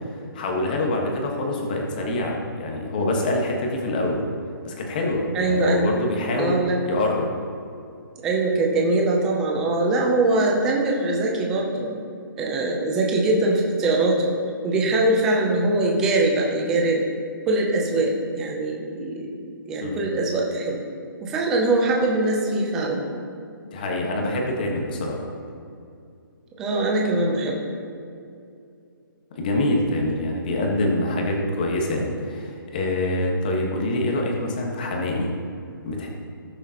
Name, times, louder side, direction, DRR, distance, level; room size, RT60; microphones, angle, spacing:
voice 1, 0.3-4.2 4.6-7.3 19.8-20.0 23.7-25.3 29.3-35.3 35.8-36.1, left 1 dB, 25° left, 0 dB, 1.3 m, -25 dB
voice 2, 5.3-5.9 6.4-6.8 8.2-12.0 12.4-14.3 14.6-17.1 17.5-19.3 19.7-20.8 21.2-23.1 26.6-27.6, right 2 dB, 5° right, -1 dB, 0.5 m, -22 dB
19.0 x 6.9 x 2.9 m, 2.5 s
hypercardioid pair, 175°, 12 cm